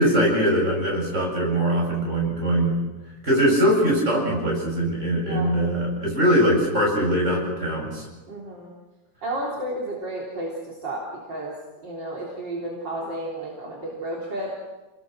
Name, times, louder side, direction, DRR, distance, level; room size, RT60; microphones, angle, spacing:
voice 1, 0.0-2.8 3.2-8.1, equal, 35° right, -2 dB, 8.1 m, -22 dB
voice 2, 5.2-5.5 8.3-8.7 9.2-11.0 11.3-11.5 11.8-14.5, right 1 dB, 60° right, -4 dB, 4.5 m, -32 dB
29.5 x 20.5 x 6.4 m, 1.1 s
omnidirectional pair, 2.3 m